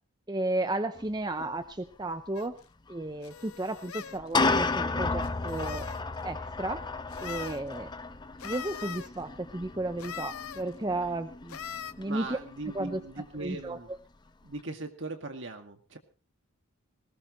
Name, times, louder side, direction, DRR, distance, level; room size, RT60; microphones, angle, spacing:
voice 1, 0.3-2.6 2.9-5.9 6.2-6.8 7.2-7.9 8.4-11.6 12.0-12.4 12.7-13.0 13.4-13.8, right 2 dB, 20° right, 9 dB, 0.7 m, -33 dB
sound 1, 1.0-1.1 1.4-1.5 2.9-3.0 4.0-13.1, left 3 dB, 20° left, 0.6 m, -33 dB
sound 2, 2.4-2.5 3.2-4.2 5.2-6.0 7.1-7.6 8.4-9.1 10.0-10.6 11.5-11.9, left 8 dB, 85° left, 0.7 m, -41 dB
voice 2, 12.0-13.9 14.4-16.0, right 2 dB, 60° right, 5 dB, 2.1 m, -39 dB
19.5 x 18.0 x 3.1 m, 0.34 s
head